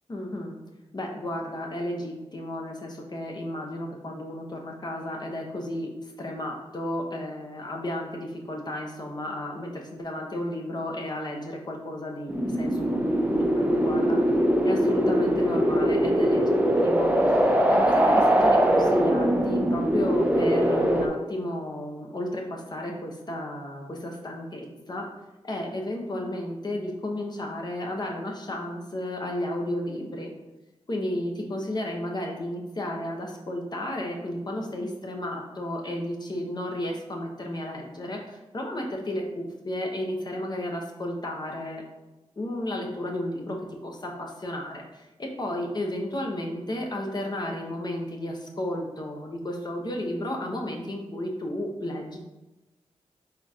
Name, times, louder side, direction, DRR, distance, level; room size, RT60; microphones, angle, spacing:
voice 1, 0.1-0.6 0.9-14.2 14.6-17.4 17.7-25.1 25.4-30.3 30.9-41.8 42.4-43.6 43.8-52.2, left 1 dB, 40° left, 0 dB, 0.8 m, -33 dB
sound 1, 12.3-21.1, equal, 15° right, 0.5 m, -22 dB
4.1 x 3.6 x 2.3 m, 1.0 s
cardioid pair, 55°, 11 cm